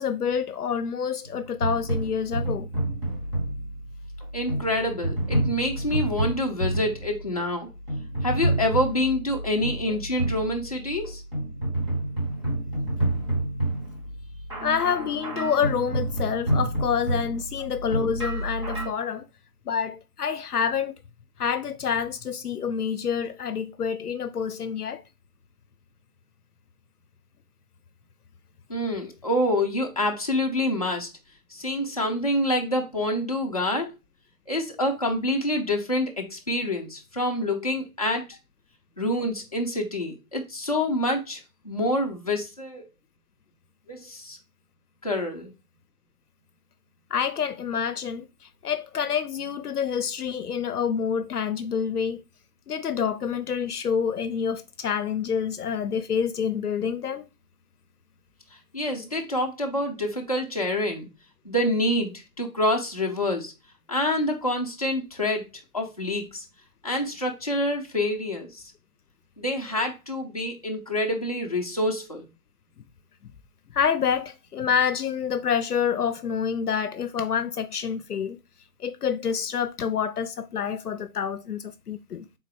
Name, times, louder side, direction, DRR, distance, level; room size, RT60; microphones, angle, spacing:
voice 1, 0.0-2.7 12.6-12.7 14.6-19.3 19.7-21.0 21.4-25.0 47.1-48.3 48.6-52.2 52.7-57.3 73.7-78.4 78.8-82.2, left 7 dB, 85° left, 0.6 m, -27 dB
sound 1, 1.2-18.9, right 1 dB, 20° right, 1.0 m, -29 dB
voice 2, 4.3-7.7 8.2-11.2 28.7-31.1 31.5-33.9 34.5-38.4 39.0-42.9 43.9-44.4 45.0-45.5 58.7-61.1 61.4-63.5 63.9-65.4 65.7-66.4 66.8-68.7 69.4-72.3, left 1 dB, 25° left, 0.6 m, -27 dB
4.0 x 3.7 x 3.2 m
figure-of-eight pair, 155°, 44 cm